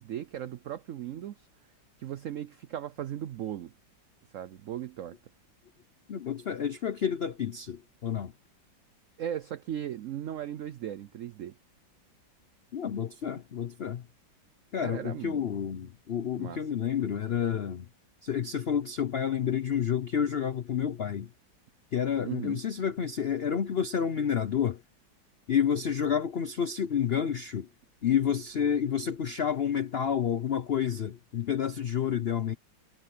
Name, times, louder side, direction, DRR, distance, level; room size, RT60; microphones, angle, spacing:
voice 1, 0.0-1.5 2.0-3.7 4.3-5.2 9.2-11.5 14.8-15.5 16.4-16.6 22.2-22.6, right 10 dB, 90° right, 0.6 m, -37 dB
voice 2, 6.1-8.3 12.7-14.0 14.7-17.9 18.2-21.3 21.9-24.8 25.5-27.7 28.0-32.5, left 8 dB, 80° left, 0.5 m, -29 dB
omnidirectional pair, 2.0 m